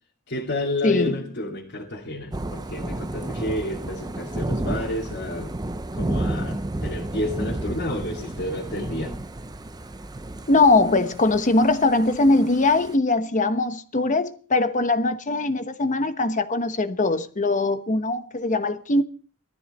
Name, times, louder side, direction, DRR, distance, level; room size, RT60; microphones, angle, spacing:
voice 1, 0.3-5.6 5.9-9.2, left 1 dB, 55° left, 2.6 m, -30 dB
voice 2, 0.8-1.2 10.5-19.0, left 2 dB, 35° left, 1.1 m, -21 dB
Thunder / Rain, 2.3-12.9, right 1 dB, 20° right, 0.6 m, -32 dB
18.5 x 14.0 x 4.3 m
head